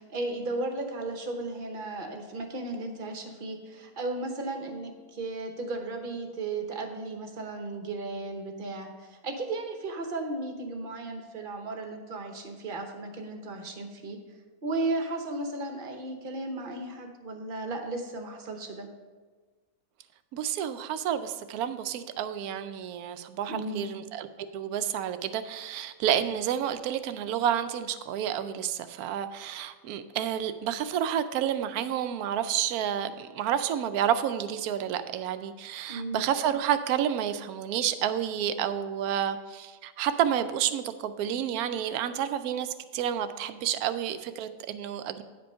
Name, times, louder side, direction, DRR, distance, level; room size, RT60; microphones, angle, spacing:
voice 1, 0.0-14.2 14.6-18.9 23.5-23.9 35.9-36.2, right 2 dB, 40° right, 4 dB, 1.1 m, -35 dB
voice 2, 20.3-24.3 24.5-45.2, right 9 dB, 80° right, 11 dB, 1.1 m, -30 dB
9.6 x 5.2 x 5.5 m, 1.4 s
omnidirectional pair, 1.6 m